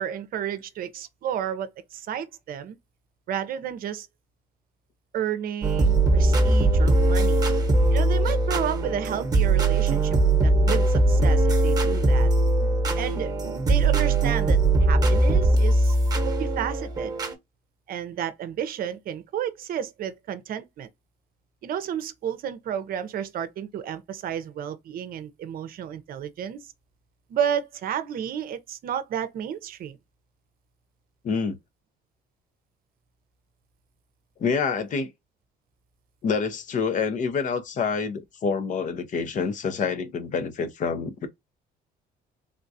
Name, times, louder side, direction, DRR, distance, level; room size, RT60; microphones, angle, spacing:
voice 1, 0.0-2.8 3.3-4.1 5.1-7.5 7.9-10.2 10.4-12.3 13.0-13.3 13.7-16.0 16.2-17.1 17.9-20.9 21.6-26.7 27.3-30.0, right 9 dB, 60° right, 0.6 m, -31 dB
sound 1, 5.6-17.3, right 2 dB, 25° right, 1.0 m, -21 dB
voice 2, 31.2-31.6 34.4-35.1 36.2-41.3, left 5 dB, 50° left, 0.7 m, -27 dB
3.6 x 2.3 x 2.6 m
cardioid pair, 110°, 17 cm